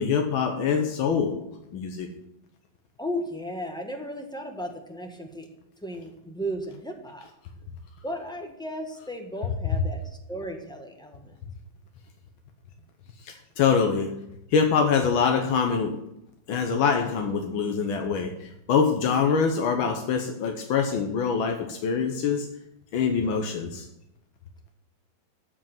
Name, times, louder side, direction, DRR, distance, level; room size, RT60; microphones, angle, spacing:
voice 1, 0.0-1.4 1.7-2.1 13.3-14.1 14.5-16.0 16.5-18.3 18.7-22.5 22.9-23.9, left 6 dB, 85° left, 4 dB, 1.8 m, -24 dB
voice 2, 3.0-5.5 5.8-7.3 8.0-11.3, equal, ahead, 3 dB, 1.3 m, -35 dB
13.0 x 5.1 x 7.3 m, 0.83 s
omnidirectional pair, 2.1 m